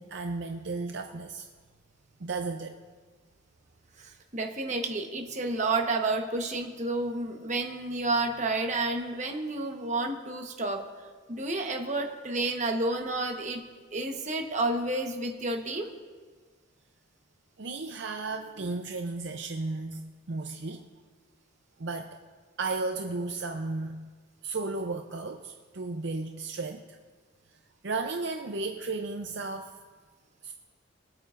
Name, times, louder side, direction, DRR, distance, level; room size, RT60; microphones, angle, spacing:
voice 1, 0.0-1.4 2.2-2.8 17.6-20.9 21.8-22.2 22.6-24.1 24.4-27.0 27.8-29.7 30.4-30.5, right 3 dB, 55° right, 4 dB, 0.6 m, -34 dB
voice 2, 4.0-10.8 11.3-13.6 13.9-15.9, right 2 dB, 35° right, 3 dB, 1.1 m, -30 dB
23.5 x 8.6 x 2.5 m, 1.5 s
head